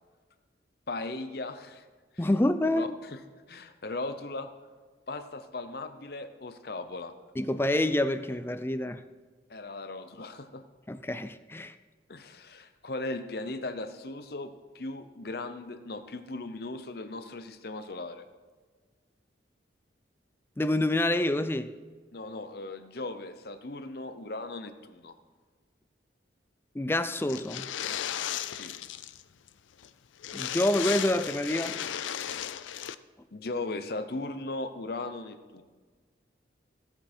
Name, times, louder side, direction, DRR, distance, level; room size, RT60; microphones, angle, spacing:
voice 1, 0.9-1.8 2.1-2.3 2.8-3.2 3.5-4.5 5.1-7.1 9.5-10.6 12.1-18.3 22.1-25.2 28.5-28.8 32.7-32.8 33.3-35.6, left 2 dB, 55° left, 9 dB, 0.8 m, -38 dB
voice 2, 2.2-2.9 7.4-9.0 10.9-11.7 20.6-21.7 26.7-27.7 30.3-31.8, left 1 dB, 10° left, 11 dB, 0.4 m, -27 dB
sound 1, 27.3-29.2 29.5-29.6 29.8-29.9 30.2-32.9, left 10 dB, 85° left, 0.4 m, -35 dB
16.5 x 7.9 x 4.4 m, 1.4 s
head